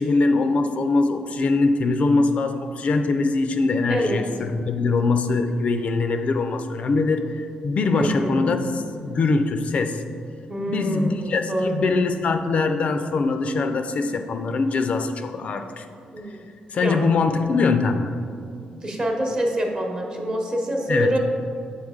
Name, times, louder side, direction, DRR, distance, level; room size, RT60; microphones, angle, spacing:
voice 1, 0.0-10.0 10.7-15.9 16.7-18.1 20.9-21.2, left 3 dB, 50° left, 7 dB, 0.3 m, -22 dB
voice 2, 3.9-4.2 7.9-8.5 10.5-11.8 16.1-16.5 16.8-17.0 18.8-21.2, right 1 dB, 35° right, 1 dB, 0.9 m, -25 dB
6.4 x 4.1 x 3.6 m, 2.4 s
cardioid pair, 100°, 3 cm